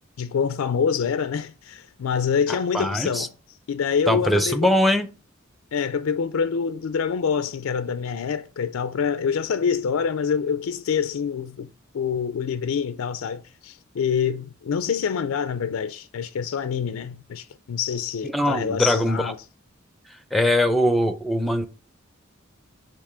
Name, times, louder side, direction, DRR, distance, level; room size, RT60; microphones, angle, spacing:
voice 1, 0.2-3.3 3.7-4.7 5.7-11.7 11.9-19.4, left 6 dB, 85° left, 0.4 m, -26 dB
voice 2, 2.5-3.3 4.1-5.1 18.2-19.3 20.3-21.7, left 1 dB, ahead, 0.5 m, -22 dB
6.9 x 2.9 x 4.9 m
head